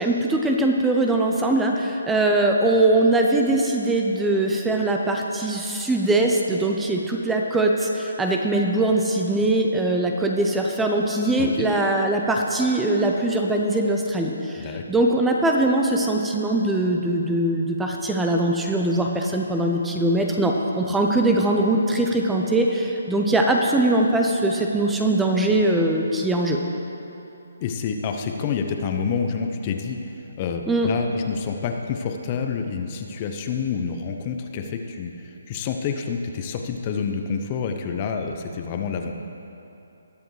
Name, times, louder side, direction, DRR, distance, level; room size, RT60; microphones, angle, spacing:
voice 1, 0.0-26.6 30.7-30.9, right 2 dB, 5° right, 1 dB, 0.7 m, -21 dB
voice 2, 27.6-30.0 30.4-39.1, left 6 dB, 30° left, 4 dB, 0.8 m, -28 dB
19.5 x 7.0 x 3.3 m, 2.9 s
figure-of-eight pair, 150°, 0 cm